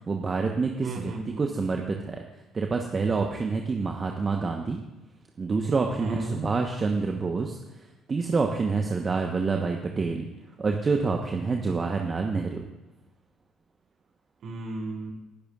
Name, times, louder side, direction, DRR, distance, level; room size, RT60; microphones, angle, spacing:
voice 1, 0.1-2.2 2.5-4.8 5.4-7.6 8.1-10.3 10.6-12.6, right 4 dB, 35° right, 2 dB, 1.2 m, -27 dB
voice 2, 0.8-1.4 6.0-6.4 14.4-15.1, right 3 dB, 60° right, -2 dB, 4.6 m, -34 dB
21.0 x 12.0 x 2.5 m, 1.0 s
hypercardioid pair, 55°, 0 cm